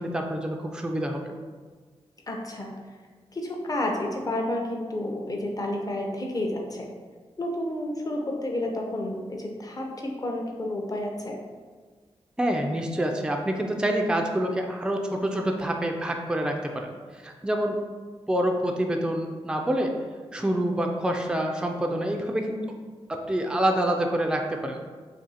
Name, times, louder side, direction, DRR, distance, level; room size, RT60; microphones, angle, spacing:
voice 1, 0.0-1.3 12.4-17.8 18.3-19.9 20.3-22.6 23.1-24.8, right 1 dB, 5° right, 3 dB, 0.4 m, -27 dB
voice 2, 2.3-2.7 3.3-6.9 7.4-11.4, left 1 dB, 35° left, 1 dB, 0.6 m, -30 dB
2.7 x 2.6 x 4.0 m, 1.5 s
cardioid pair, 65°, 11 cm